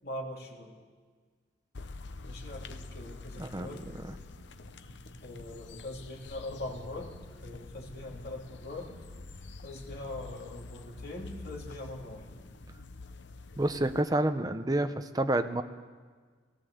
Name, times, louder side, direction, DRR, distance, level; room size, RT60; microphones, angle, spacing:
voice 1, 0.0-0.8 2.2-3.9 5.2-9.0 9.6-12.3, left 1 dB, 55° left, -1 dB, 3.3 m, -42 dB
sound 1, 1.7-14.0, left 3 dB, 70° left, 0.8 m, -47 dB
sound 2, 3.3-12.9, equal, 90° left, 2.7 m, -54 dB
voice 2, 3.4-3.7 4.1-4.2 13.6-15.6, right 1 dB, 20° right, 8 dB, 0.8 m, -29 dB
19.0 x 17.0 x 8.0 m, 1.5 s
head